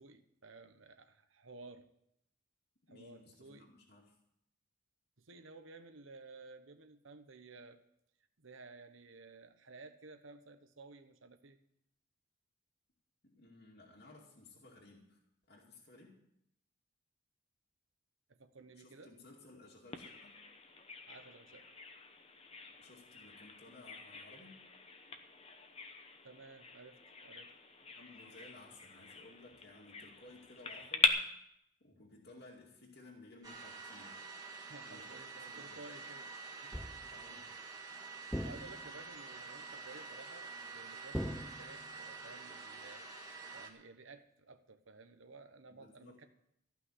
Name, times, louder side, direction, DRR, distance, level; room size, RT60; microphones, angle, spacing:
voice 1, 0.0-1.9 2.9-3.7 5.2-7.8 8.4-11.6 18.3-19.1 21.1-21.7 26.2-27.5 34.5-36.3 36.6-36.8 38.4-43.1 43.5-46.3, right 3 dB, 80° right, 9 dB, 1.1 m, -55 dB
voice 2, 2.9-4.1 13.2-15.2 15.5-16.2 18.8-20.4 22.8-24.6 27.9-31.2 31.8-34.1 34.8-35.8 37.1-37.5 45.7-46.2, left 2 dB, 50° left, -2 dB, 2.4 m, -57 dB
Bird vocalization bird call bird song, 19.9-31.1, left 5 dB, 30° left, 0.9 m, -41 dB
sound 1, 33.4-43.7, right 4 dB, 20° right, 1.7 m, -48 dB
sound 2, 36.7-37.2 38.3-39.1 41.1-42.0, equal, ahead, 0.5 m, -41 dB
14.5 x 6.0 x 9.8 m, 0.75 s
head